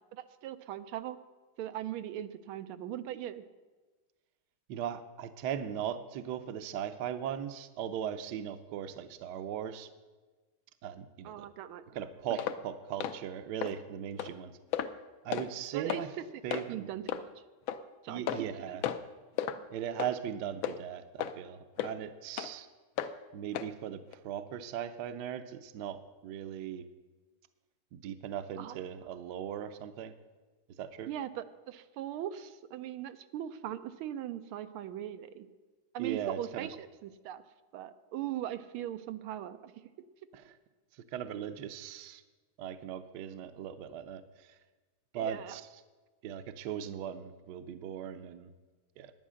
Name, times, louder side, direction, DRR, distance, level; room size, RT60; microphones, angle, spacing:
voice 1, 0.1-1.2 1.6-3.4 11.2-12.0 12.3-12.4 15.7-16.0 16.3-16.4 16.7-17.3 18.0-18.8 19.5-19.6 28.6-28.8 31.1-35.5 35.9-37.4 37.7-39.7 45.2-45.6, right 11 dB, 85° right, 10 dB, 1.5 m, -40 dB
voice 2, 4.7-9.9 10.8-11.5 11.9-14.6 15.2-16.1 16.4-16.9 18.1-18.8 19.7-22.7 23.3-26.9 27.9-30.1 30.8-31.1 36.0-36.7 40.3-40.6 41.1-42.2 42.6-44.5 45.1-45.6 46.2-48.5 49.0-49.1, right 9 dB, 65° right, 10 dB, 1.1 m, -38 dB
sound 1, 12.4-12.6 13.0-13.2 13.6-13.7 14.2-14.3 14.7-15.0 15.3-15.5 15.9-16.0 16.5-16.7 17.1-17.2 17.7-17.8 18.3-18.5 18.8-19.1 19.4-19.6 20.0-20.1 20.6-20.8 21.2-21.4 21.8-21.9 22.4-22.5 23.0-23.1 23.6-23.7 24.1-24.2, left 10 dB, 75° left, 1.4 m, -33 dB
11.0 x 9.3 x 6.3 m, 1.3 s
omnidirectional pair, 2.3 m